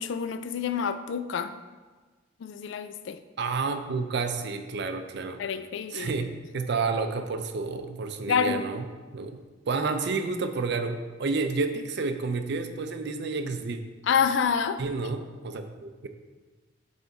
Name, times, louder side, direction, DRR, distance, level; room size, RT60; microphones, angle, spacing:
voice 1, 0.0-1.6 2.4-3.2 5.4-6.1 8.3-8.7 14.0-14.8, left 6 dB, 70° left, 11 dB, 0.3 m, -27 dB
voice 2, 3.4-5.4 5.9-8.8 9.1-9.4 9.7-13.8 14.8-16.1, right 4 dB, 65° right, 8 dB, 0.5 m, -30 dB
8.0 x 3.4 x 4.0 m, 1.4 s
head